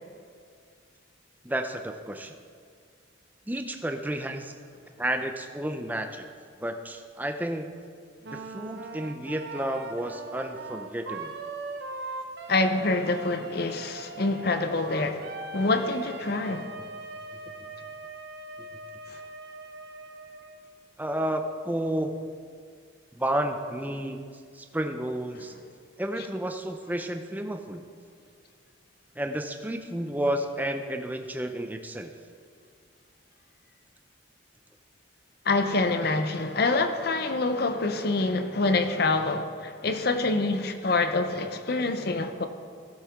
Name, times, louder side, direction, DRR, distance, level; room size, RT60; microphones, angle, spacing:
voice 1, 1.4-2.3 3.5-4.5 5.0-6.3 6.6-7.7 8.3-11.4 21.0-22.4 23.2-24.3 24.5-25.5 26.0-27.8 29.2-32.1, right 1 dB, 10° right, 0.5 m, -31 dB
Wind instrument woodwind instrument, 8.2-20.7, right 3 dB, 55° right, 0.7 m, -40 dB
voice 2, 12.5-16.7 35.5-42.5, left 3 dB, 50° left, 0.7 m, -26 dB
16.5 x 7.4 x 3.6 m
head